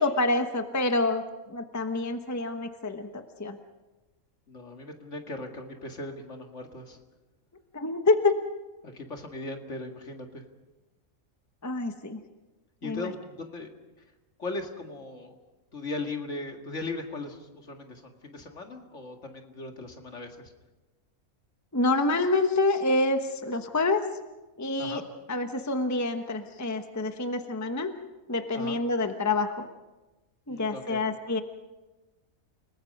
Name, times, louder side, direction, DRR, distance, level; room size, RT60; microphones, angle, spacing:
voice 1, 0.0-3.6 7.7-8.4 11.6-12.2 12.8-13.1 21.7-24.0 24.6-25.0 25.3-27.9 28.3-29.7 30.5-31.4, left 2 dB, 15° left, 7 dB, 1.0 m, -27 dB
voice 2, 4.5-7.0 8.8-10.4 12.8-13.7 14.4-15.4 15.7-20.5 24.8-25.0 28.5-28.8 30.5-31.0, left 2 dB, 55° left, 4 dB, 2.3 m, -38 dB
30.0 x 19.5 x 5.4 m, 1.1 s
omnidirectional pair, 1.5 m